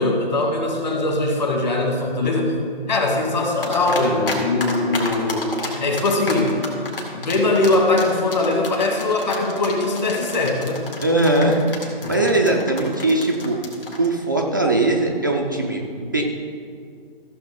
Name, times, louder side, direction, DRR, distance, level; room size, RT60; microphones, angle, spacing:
voice 1, 0.0-2.6 2.9-6.6 7.1-10.9 12.0-12.3, left 2 dB, 50° left, 1 dB, 2.0 m, -21 dB
sound 1, 3.6-4.4 4.6-14.1, left 3 dB, 70° left, 2.3 m, -30 dB
voice 2, 11.0-13.6 14.0-16.2, right 2 dB, 20° right, 0 dB, 0.4 m, -20 dB
15.0 x 7.0 x 3.8 m, 2.2 s
figure-of-eight pair, 145°, 29 cm